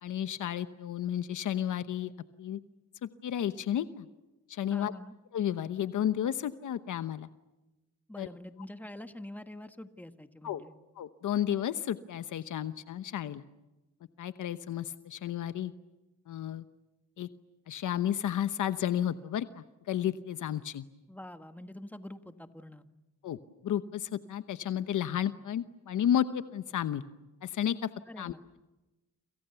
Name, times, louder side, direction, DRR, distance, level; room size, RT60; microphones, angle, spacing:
voice 1, 0.0-2.1 2.4-2.6 3.0-4.1 4.5-4.9 5.3-7.3 8.2-8.3 10.4-10.6 11.0-13.4 14.2-15.7 16.3-16.6 17.2-17.3 17.7-20.8 23.2-23.4 23.6-27.0 27.4-27.9 28.2-28.3, left 10 dB, 70° left, 11 dB, 1.0 m, -32 dB
voice 2, 4.7-5.1 8.1-10.7 21.1-22.9 28.1-28.4, left 1 dB, 5° left, 8 dB, 1.6 m, -45 dB
29.5 x 27.0 x 7.0 m, 1.0 s
cardioid pair, 110°, 31 cm